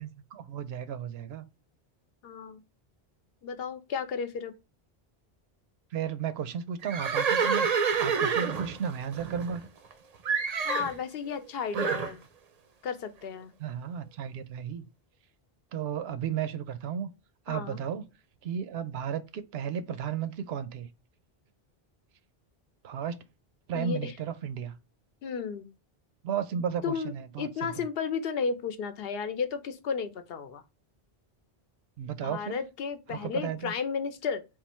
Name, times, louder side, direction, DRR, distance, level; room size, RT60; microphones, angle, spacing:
voice 1, 0.0-1.5 5.9-9.6 11.8-12.0 13.6-14.9 15.7-17.1 17.5-18.1 18.4-20.9 22.8-23.2 23.7-24.7 26.2-27.7 32.0-32.6 33.1-33.7, right 8 dB, 85° right, 0.8 m, -34 dB
voice 2, 2.2-2.6 3.4-4.5 10.6-12.2 12.8-13.5 17.5-17.8 23.7-24.1 25.2-25.7 26.8-27.1 27.4-30.6 32.2-34.4, left 6 dB, 75° left, 0.8 m, -33 dB
Livestock farm animals working animals, 6.8-9.9 10.2-10.9 11.7-12.1, right 6 dB, 50° right, 0.5 m, -28 dB
3.7 x 2.5 x 4.1 m
omnidirectional pair, 1.0 m